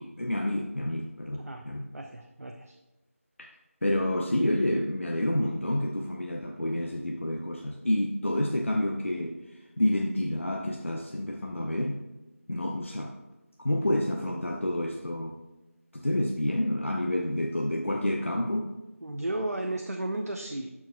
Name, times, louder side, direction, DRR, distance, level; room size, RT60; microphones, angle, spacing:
voice 1, 0.0-1.8 3.8-9.4 9.8-12.0 12.5-13.1 13.6-15.3 15.9-18.7, left 1 dB, 60° left, 0 dB, 0.7 m, -29 dB
voice 2, 1.3-1.7 1.9-2.8 19.0-20.7, right 1 dB, 85° right, 3 dB, 0.6 m, -34 dB
11.5 x 4.7 x 2.2 m, 1.0 s
figure-of-eight pair, 175°, 8 cm